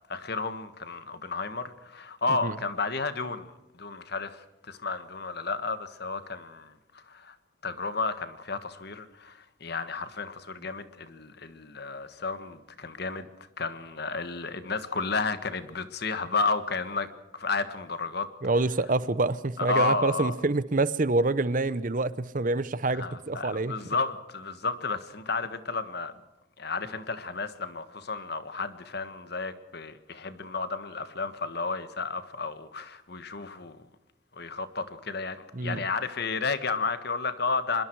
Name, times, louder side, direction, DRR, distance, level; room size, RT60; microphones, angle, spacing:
voice 1, 0.1-7.3 7.6-13.3 13.6-17.1 17.3-18.3 19.6-20.3 22.9-26.1 26.6-33.8 34.3-37.8, left 4 dB, 55° left, 1.6 m, -32 dB
voice 2, 18.4-23.7 35.5-35.8, right 2 dB, 40° right, 0.8 m, -26 dB
25.0 x 22.0 x 4.7 m
head